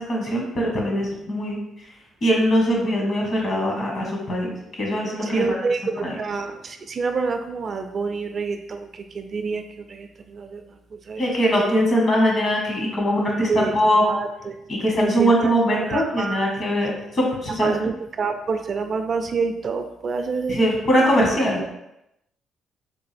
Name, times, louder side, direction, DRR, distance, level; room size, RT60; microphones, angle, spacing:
voice 1, 0.1-1.6 2.2-4.5 4.7-5.4 6.0-6.2 11.2-14.0 14.7-17.7 20.5-21.6, equal, 45° left, -2 dB, 1.3 m, -21 dB
voice 2, 5.3-9.6 9.9-10.6 11.1-11.2 13.5-13.7 14.0-14.5 15.0-16.4 17.6-20.7 21.2-21.3, right 4 dB, 45° right, 6 dB, 0.3 m, -27 dB
3.6 x 2.5 x 3.3 m, 0.84 s
cardioid pair, 90°, 0 cm